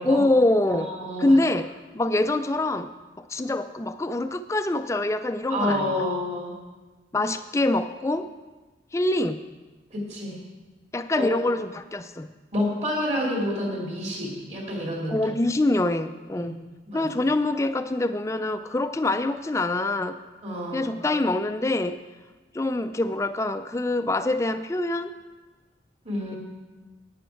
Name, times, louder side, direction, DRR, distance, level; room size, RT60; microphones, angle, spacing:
voice 1, 0.0-0.9 1.2-6.0 7.1-8.3 8.9-9.4 10.9-12.3 15.1-16.6 16.9-20.2 20.7-22.0 22.5-25.2, left 2 dB, 15° left, 11 dB, 0.3 m, -25 dB
voice 2, 0.7-1.4 5.5-6.6 9.9-10.4 11.2-11.3 12.5-15.1 16.3-16.5 16.9-17.1 20.4-20.9 26.0-26.4, left 1 dB, 40° right, -2 dB, 2.5 m, -28 dB
11.5 x 9.3 x 4.5 m, 1.3 s
head